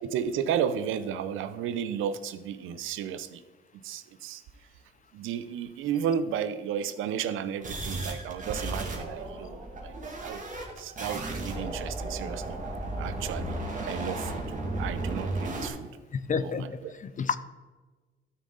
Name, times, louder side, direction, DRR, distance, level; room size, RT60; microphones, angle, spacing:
voice 1, 0.0-3.4 3.8-4.4 5.1-10.4 10.8-12.6 13.0-13.6 13.8-14.4 14.8-15.9 16.4-16.9, right 8 dB, 85° right, 13 dB, 0.7 m, -33 dB
sound 1, 7.6-15.7, right 2 dB, 40° right, 2.5 m, -34 dB
voice 2, 16.1-17.4, left 6 dB, 40° left, 14 dB, 0.7 m, -30 dB
12.5 x 6.5 x 4.0 m, 1.3 s
cardioid pair, 90°, 20 cm